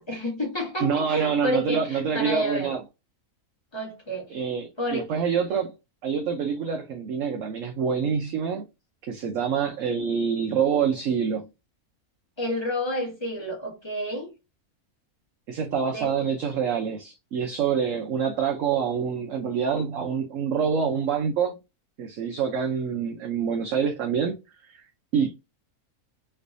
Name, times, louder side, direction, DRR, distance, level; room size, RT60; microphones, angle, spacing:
voice 1, 0.0-2.8 3.7-4.4 4.8-5.1 12.4-14.3 15.8-16.3, equal, 20° left, 1.3 m, -30 dB
voice 2, 0.8-2.8 4.3-5.7 6.0-8.6 9.0-11.5 15.5-21.6 22.0-24.4 24.7-24.8 25.1-25.3, right 6 dB, 65° right, 1.0 m, -26 dB
3.3 x 3.2 x 2.6 m
omnidirectional pair, 1.6 m